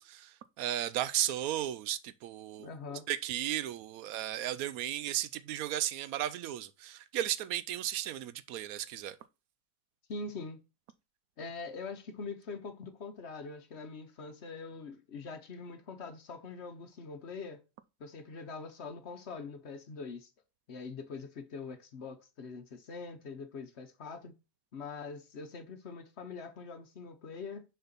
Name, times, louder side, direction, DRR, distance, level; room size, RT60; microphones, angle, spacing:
voice 1, 0.0-2.7 3.1-9.2, right 12 dB, 80° right, 1.0 m, -35 dB
voice 2, 2.6-3.1 10.1-10.6 11.4-17.6 18.0-20.3 20.7-24.3 24.7-27.6, left 4 dB, 55° left, 1.0 m, -43 dB
6.6 x 4.3 x 4.1 m
omnidirectional pair, 1.5 m